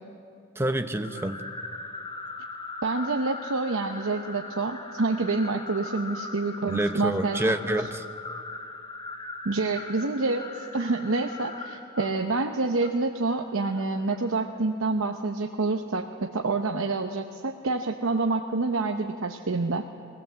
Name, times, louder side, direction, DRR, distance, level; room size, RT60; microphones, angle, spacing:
voice 1, 0.6-1.5 6.7-8.0, right 1 dB, 10° right, 7 dB, 0.7 m, -27 dB
sound 1, 1.0-14.4, left 3 dB, 20° left, 1.0 m, -40 dB
voice 2, 2.8-7.6 9.4-19.9, right 3 dB, 70° right, 4 dB, 0.8 m, -27 dB
22.5 x 17.0 x 7.6 m, 2.6 s
head